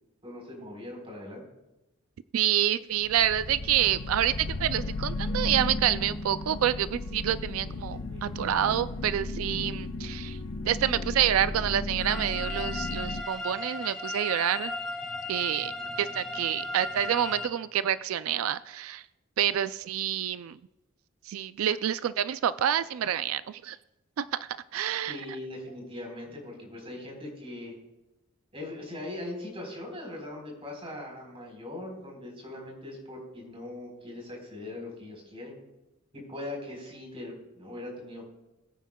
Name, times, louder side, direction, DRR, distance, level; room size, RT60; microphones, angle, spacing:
voice 1, 0.2-1.4 8.0-8.4 25.1-27.7 28.5-35.6 36.1-38.3, left 1 dB, 30° right, -1 dB, 4.1 m, -40 dB
voice 2, 2.3-10.4 10.7-14.7 15.3-15.7 16.0-19.0 19.4-20.6 21.3-23.8 24.2-24.3 24.7-25.2, right 10 dB, 90° right, 14 dB, 0.3 m, -28 dB
sound 1, 3.0-13.2, left 2 dB, 65° left, 0.8 m, -35 dB
sound 2, 12.0-17.5, left 2 dB, 5° left, 1.7 m, -36 dB
21.0 x 9.1 x 2.3 m, 1.0 s
head